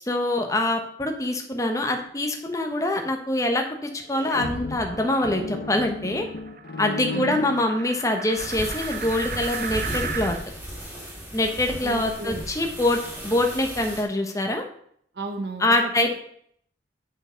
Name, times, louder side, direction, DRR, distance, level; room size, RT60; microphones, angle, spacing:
voice 1, 0.1-6.3 6.8-10.3 11.3-14.6 15.6-16.1, left 1 dB, 20° left, 4 dB, 1.1 m, -24 dB
sound 1, 3.7-10.4, right 6 dB, 50° right, 0.8 m, -38 dB
sound 2, 4.0-8.3, left 3 dB, 60° left, 0.8 m, -35 dB
voice 2, 7.1-7.4 11.8-12.5 15.1-16.1, right 2 dB, 70° right, 5 dB, 1.1 m, -34 dB
sound 3, 8.3-14.0, equal, 10° right, 2.4 m, -35 dB
8.0 x 5.7 x 5.2 m, 0.64 s
head